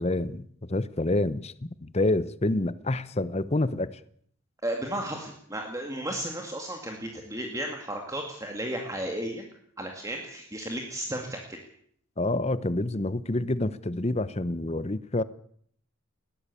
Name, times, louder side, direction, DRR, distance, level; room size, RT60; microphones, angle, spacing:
voice 1, 0.0-4.0 12.2-15.2, left 2 dB, 30° left, 0.8 m, -28 dB
voice 2, 4.6-9.4 9.8-11.6, right 1 dB, 15° right, 2.3 m, -34 dB
20.5 x 15.0 x 8.5 m
head